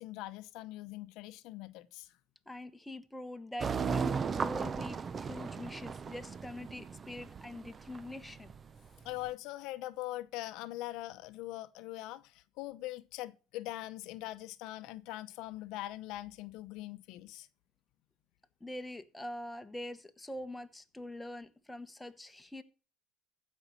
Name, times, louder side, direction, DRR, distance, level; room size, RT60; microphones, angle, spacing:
voice 1, 0.0-2.1 9.0-17.5, left 16 dB, 70° left, 0.8 m, -42 dB
voice 2, 2.5-8.5 18.6-22.6, left 1 dB, 5° left, 1.1 m, -44 dB
sound 1, 3.6-9.3, right 5 dB, 30° right, 0.5 m, -36 dB
15.0 x 5.4 x 7.3 m
supercardioid pair, 105°, 0 cm